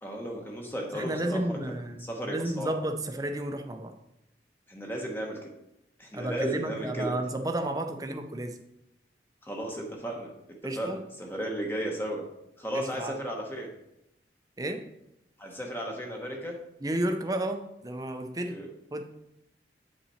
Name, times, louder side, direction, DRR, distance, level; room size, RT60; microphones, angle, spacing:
voice 1, 0.0-1.6 1.9-2.7 4.7-5.5 6.0-7.1 9.4-10.3 10.8-12.2 12.6-13.7 15.4-16.6 18.4-18.7, right 1 dB, 10° left, 0 dB, 1.0 m, -34 dB
voice 2, 0.9-3.9 6.1-8.6 10.6-11.0 12.7-13.2 14.6-14.8 16.8-18.6 18.9-19.0, right 1 dB, 20° right, 5 dB, 0.7 m, -32 dB
8.3 x 5.8 x 4.3 m, 0.85 s
head